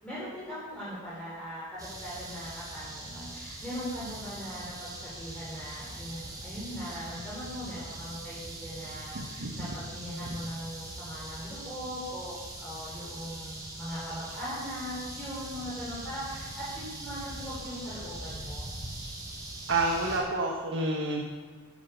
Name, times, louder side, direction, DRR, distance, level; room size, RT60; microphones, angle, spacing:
voice 1, 0.0-18.7, equal, 5° left, -11 dB, 4.4 m, -40 dB
sound 1, 1.8-20.2, right 1 dB, 15° right, 3.0 m, -42 dB
sound 2, 3.2-10.7, right 1 dB, 75° right, 1.2 m, -47 dB
voice 2, 19.7-21.2, right 2 dB, 55° right, -1 dB, 1.5 m, -28 dB
10.5 x 10.5 x 7.0 m, 1.4 s
head